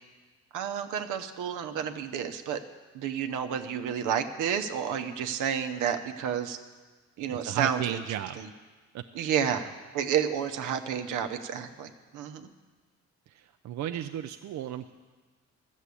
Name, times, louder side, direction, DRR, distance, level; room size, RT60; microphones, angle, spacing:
voice 1, 0.5-2.6 2.9-6.6 7.2-8.5 9.1-12.5, right 8 dB, 90° right, 7 dB, 0.9 m, -31 dB
voice 2, 7.3-8.4 13.6-14.9, right 11 dB, 70° right, 7 dB, 0.5 m, -34 dB
13.0 x 7.4 x 8.3 m, 1.4 s
cardioid pair, 90°, 30 cm